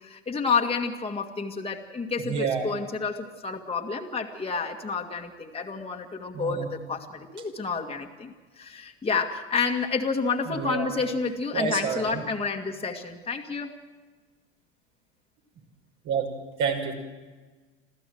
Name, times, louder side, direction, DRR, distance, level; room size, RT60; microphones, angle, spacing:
voice 1, 0.0-13.7, left 5 dB, 15° left, 2 dB, 2.0 m, -30 dB
voice 2, 2.3-2.7 6.3-6.7 10.5-10.9 11.5-12.2 16.0-16.3 16.6-16.9, right 6 dB, 55° right, 3 dB, 5.5 m, -28 dB
27.0 x 15.0 x 7.8 m, 1.4 s
hypercardioid pair, 85°, 37 cm